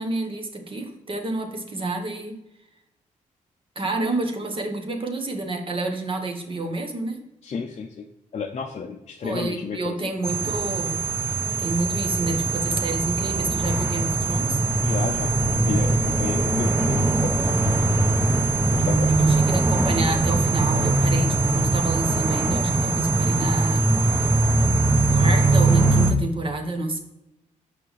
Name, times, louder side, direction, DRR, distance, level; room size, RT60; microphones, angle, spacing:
voice 1, 0.0-2.3 3.7-7.2 9.2-11.0 11.6-14.6 19.1-24.4 25.1-27.0, right 2 dB, 40° right, 4 dB, 1.1 m, -28 dB
voice 2, 7.4-8.1 8.3-10.1 14.8-17.6 18.7-19.4, left 6 dB, 50° left, 2 dB, 0.6 m, -32 dB
sound 1, 10.2-26.1, right 2 dB, 15° right, 1.0 m, -21 dB
5.9 x 5.0 x 3.2 m, 0.89 s
cardioid pair, 75°, 14 cm